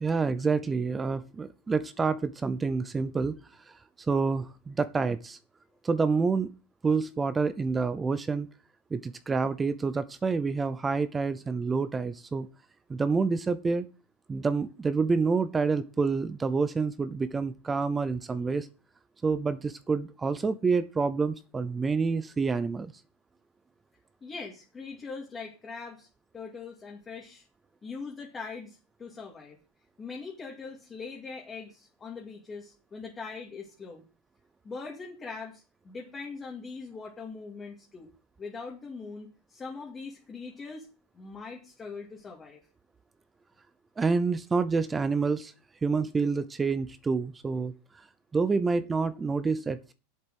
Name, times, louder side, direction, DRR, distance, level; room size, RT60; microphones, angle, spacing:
voice 1, 0.0-3.4 3.7-5.4 5.8-6.5 6.8-8.5 8.9-12.5 12.9-13.9 14.3-18.7 19.2-22.9 44.0-45.5 45.8-47.7 48.3-49.9, right 4 dB, 15° right, 14 dB, 0.6 m, -28 dB
voice 2, 24.2-26.1 26.3-27.4 27.8-29.6 30.0-34.0 34.6-38.1 38.4-40.9 41.1-42.6, left 4 dB, 15° left, 0 dB, 2.3 m, -41 dB
7.9 x 7.4 x 7.8 m, 0.33 s
supercardioid pair, 150°, 0 cm